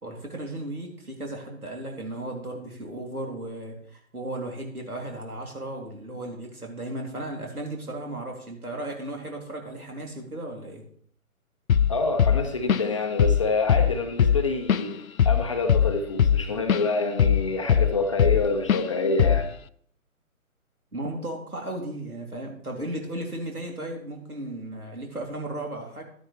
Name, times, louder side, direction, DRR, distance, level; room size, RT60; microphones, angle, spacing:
voice 1, 0.0-10.8 20.9-26.0, right 1 dB, 85° right, 1 dB, 3.1 m, -35 dB
Drum kit / Drum, 11.7-11.9 12.2-12.9 13.2-13.4 13.7-16.9 17.2-18.4 18.7-18.9 19.2-19.5, left 8 dB, 70° left, 0.5 m, -20 dB
voice 2, 11.9-19.5, left 3 dB, 20° left, 5 dB, 0.7 m, -27 dB
12.0 x 10.0 x 3.3 m, 0.62 s
figure-of-eight pair, 140°, 43 cm